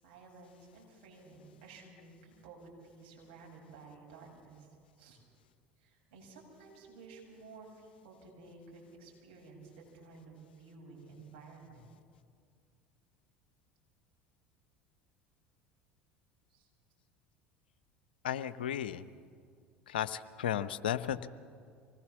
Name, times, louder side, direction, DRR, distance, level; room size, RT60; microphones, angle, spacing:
voice 1, 0.0-5.2 5.8-11.9 16.5-16.7, right 3 dB, 65° right, -1 dB, 7.5 m, -54 dB
voice 2, 18.2-19.0 19.9-21.3, left 10 dB, 75° left, 14 dB, 0.8 m, -34 dB
25.0 x 19.5 x 7.2 m, 2.2 s
figure-of-eight pair, 70°, 5 cm